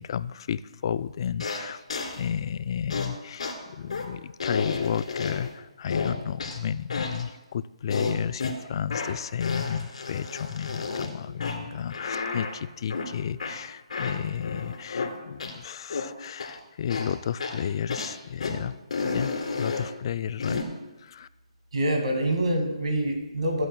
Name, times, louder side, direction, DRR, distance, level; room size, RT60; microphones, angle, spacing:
voice 1, 0.0-1.8 2.2-18.8 19.0-20.7 21.0-21.3, left 8 dB, 45° left, 16 dB, 0.3 m, -32 dB
sound 1, 1.4-1.6 1.9-2.2 2.9-3.1 3.4-3.5 3.9-4.1 4.4-5.5 5.9-6.6 6.9-7.2 7.9-8.5 8.9-9.1 9.4-11.1 11.4-11.6 11.9-12.5 12.9-13.1 13.4-13.5 13.9-15.1 15.4-15.5 15.9-16.1 16.4-16.5 16.9-17.1 17.4-17.6 17.9-18.1 18.4-18.5 18.9-19.9 20.4-20.6, left 4 dB, 70° left, 2.0 m, -31 dB
voice 2, 21.7-23.7, right 1 dB, 70° right, 3 dB, 2.2 m, -26 dB
21.5 x 7.9 x 2.3 m, 0.99 s
hypercardioid pair, 155°, 3 cm